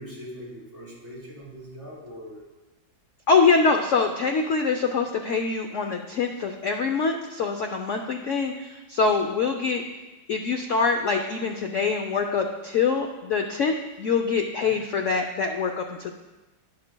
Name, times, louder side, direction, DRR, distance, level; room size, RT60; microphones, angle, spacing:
voice 1, 0.0-2.4, equal, 20° left, -7 dB, 3.1 m, -41 dB
voice 2, 3.3-9.8 10.3-16.1, left 4 dB, 85° left, 4 dB, 0.6 m, -24 dB
11.5 x 10.5 x 2.2 m, 1.1 s
omnidirectional pair, 2.1 m